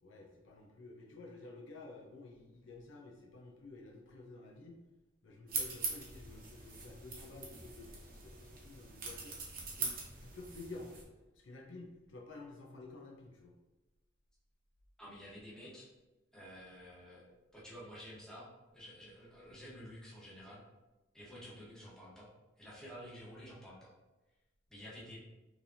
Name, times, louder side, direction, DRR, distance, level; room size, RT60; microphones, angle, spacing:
voice 1, 0.0-4.8 5.2-9.4 9.7-11.0 11.3-13.6, left 2 dB, 70° left, 0 dB, 0.7 m, -51 dB
sound 1, 5.5-11.0, right 4 dB, 50° right, 0.9 m, -43 dB
voice 2, 15.0-15.9 16.3-17.2 17.5-18.5 18.7-20.6 21.1-22.3 22.6-23.9 24.7-25.2, equal, 5° left, -7 dB, 1.2 m, -51 dB
4.9 x 3.3 x 2.8 m, 1.1 s
head